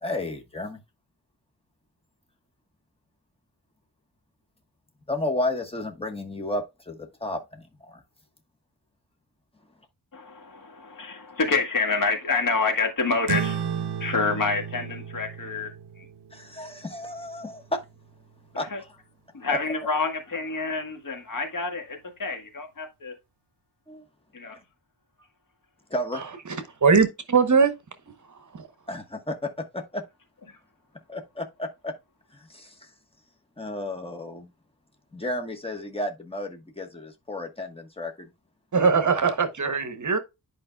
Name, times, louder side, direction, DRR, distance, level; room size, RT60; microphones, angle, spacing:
voice 1, 0.0-0.8 5.1-8.0 16.3-17.8 18.6-19.0 19.5-19.6 23.9-24.0 25.9-26.2 28.9-30.0 31.1-31.9 32.3-32.7 33.6-34.5 35.1-38.3, left 1 dB, 15° left, 1.2 m, -32 dB
voice 2, 10.1-13.7 14.0-15.7 16.0-16.1 18.7-18.8 19.3-23.1 24.3-24.6, left 4 dB, 55° left, 1.8 m, -27 dB
sound 1, 13.3-18.1, right 7 dB, 80° right, 0.6 m, -34 dB
voice 3, 26.8-27.7 28.5-28.7 38.7-40.2, right 5 dB, 45° right, 0.9 m, -20 dB
10.5 x 5.1 x 2.3 m
wide cardioid pair, 145°, 40 cm